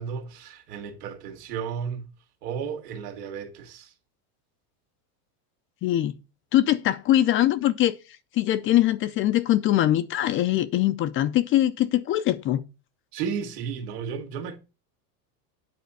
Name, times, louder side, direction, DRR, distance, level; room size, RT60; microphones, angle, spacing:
voice 1, 0.0-2.1 2.4-3.9 13.1-14.6, right 7 dB, 80° right, 2.1 m, -33 dB
voice 2, 5.8-6.1 6.5-7.9 8.3-12.6, left 13 dB, 30° left, 0.4 m, -22 dB
9.4 x 4.3 x 6.8 m
supercardioid pair, 145°, 47 cm